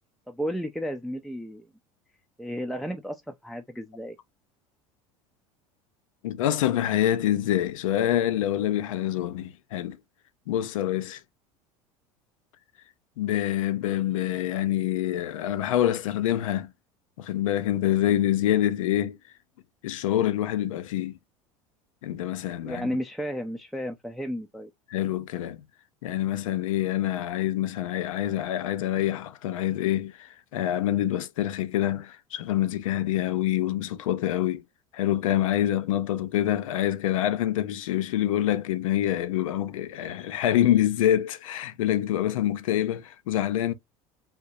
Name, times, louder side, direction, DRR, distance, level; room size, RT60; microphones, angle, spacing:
voice 1, 0.3-1.7 2.4-4.2 22.6-24.7, equal, ahead, 0.5 m, -33 dB
voice 2, 6.2-10.0 10.5-11.2 13.2-16.7 17.2-19.2 19.8-21.2 22.0-22.9 24.9-25.6 26.0-34.6 34.9-43.7, left 12 dB, 70° left, 0.5 m, -26 dB
3.5 x 2.7 x 2.6 m
figure-of-eight pair, 75°, 18 cm